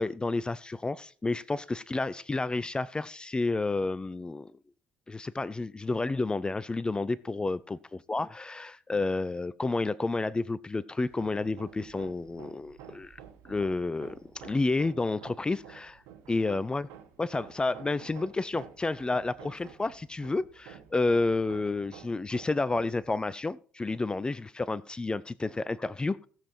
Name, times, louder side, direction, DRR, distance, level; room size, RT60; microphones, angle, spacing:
voice 1, 0.0-4.5 5.1-7.8 8.1-13.2 13.5-16.0 16.3-16.9 17.2-26.3, left 3 dB, 20° left, 0.5 m, -30 dB
Hammer, 11.1-23.1, right 9 dB, 65° right, 1.5 m, -51 dB
16.5 x 7.6 x 4.4 m
figure-of-eight pair, 55°, 5 cm